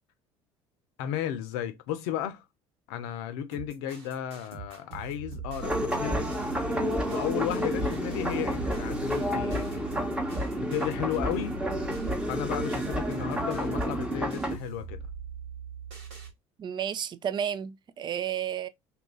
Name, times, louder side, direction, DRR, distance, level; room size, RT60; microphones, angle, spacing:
voice 1, 1.0-2.4 2.9-6.3 7.1-10.1 10.6-11.6 12.3-15.1, left 10 dB, 75° left, 0.6 m, -34 dB
sound 1, 3.5-16.3, right 6 dB, 80° right, 1.5 m, -42 dB
sound 2, 5.6-14.6, equal, 5° right, 0.9 m, -30 dB
voice 2, 16.6-18.7, right 9 dB, 35° right, 0.4 m, -32 dB
2.9 x 2.5 x 3.5 m
hypercardioid pair, 65°, 13 cm